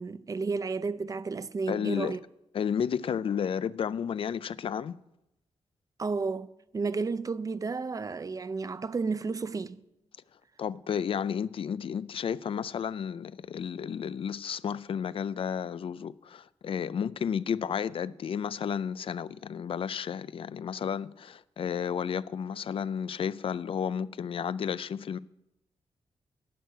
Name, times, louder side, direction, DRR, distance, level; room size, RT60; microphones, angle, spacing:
voice 1, 0.0-2.2 6.0-9.8, right 4 dB, 30° right, 0.5 m, -32 dB
voice 2, 1.7-2.2 2.5-5.0 10.6-25.2, left 7 dB, 55° left, 0.4 m, -32 dB
11.0 x 6.3 x 9.2 m
wide cardioid pair, 105°, 11 cm